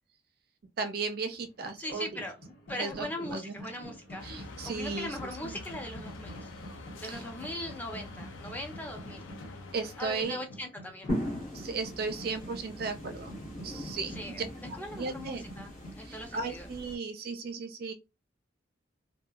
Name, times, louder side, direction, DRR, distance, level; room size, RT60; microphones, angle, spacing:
voice 1, 0.8-2.2 2.8-3.9 4.2-5.6 7.1-7.2 9.7-10.4 11.5-13.3 13.6-14.4 15.0-15.4 16.0-17.9, right 4 dB, 50° right, 0.4 m, -36 dB
sound 1, 1.4-15.9, equal, 65° left, 1.5 m, -48 dB
voice 2, 1.8-2.4 2.7-6.5 7.0-9.2 10.0-11.1 14.1-14.4 14.8-16.7, left 1 dB, 10° left, 0.4 m, -40 dB
sound 2, 4.2-10.2, left 3 dB, 90° left, 0.4 m, -46 dB
sound 3, 11.1-16.9, equal, 40° left, 1.0 m, -39 dB
2.8 x 2.4 x 2.3 m
head